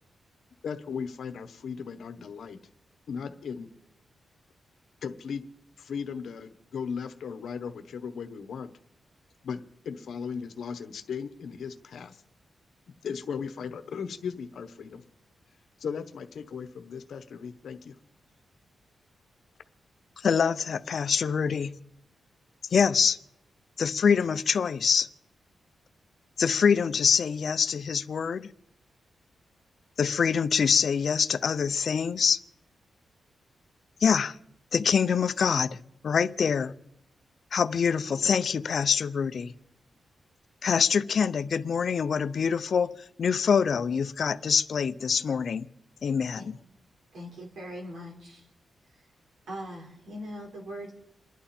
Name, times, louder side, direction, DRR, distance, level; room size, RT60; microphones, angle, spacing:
voice 1, 0.6-2.6 3.1-3.7 5.0-5.4 5.8-8.7 9.4-12.2 12.9-15.0 15.8-18.0, left 6 dB, 70° left, 1.1 m, -37 dB
voice 2, 20.2-21.7 22.7-23.2 23.8-25.1 26.4-28.5 30.0-32.4 34.0-34.4 34.7-35.8 36.0-36.7 37.5-39.5 40.6-42.9 43.2-45.7 46.0-46.5, left 6 dB, 55° left, 0.6 m, -25 dB
voice 3, 47.1-48.5 48.9-49.0 49.5-50.9, equal, 75° right, 4.8 m, -41 dB
28.5 x 11.0 x 4.4 m
wide cardioid pair, 140°, 0 cm